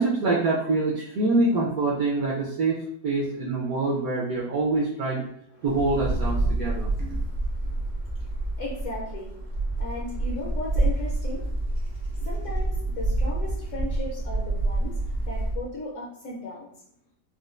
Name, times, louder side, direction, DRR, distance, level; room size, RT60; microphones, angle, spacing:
voice 1, 0.0-5.3 5.6-6.9, right 3 dB, 70° right, -5 dB, 0.9 m, -25 dB
Wind, 5.7-15.7, right 2 dB, 85° right, 0.5 m, -28 dB
voice 2, 6.5-16.7, left 2 dB, 65° left, -4 dB, 0.7 m, -38 dB
4.2 x 2.2 x 2.4 m, 0.71 s
omnidirectional pair, 2.0 m